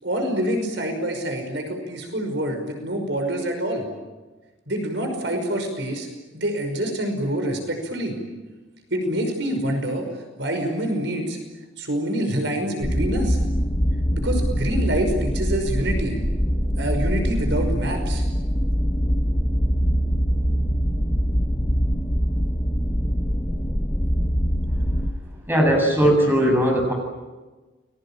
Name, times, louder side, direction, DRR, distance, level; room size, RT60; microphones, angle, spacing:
voice 1, 0.0-3.9 4.7-6.1 6.3-8.2 8.9-10.1 10.4-11.4 11.8-13.4 14.2-16.2 16.7-18.2, right 1 dB, 65° right, 5 dB, 5.6 m, -26 dB
sound 1, 12.8-25.1, equal, 20° left, 1.7 m, -23 dB
voice 2, 25.5-26.9, equal, 10° right, 1 dB, 7.7 m, -18 dB
30.0 x 22.0 x 8.9 m, 1.2 s
head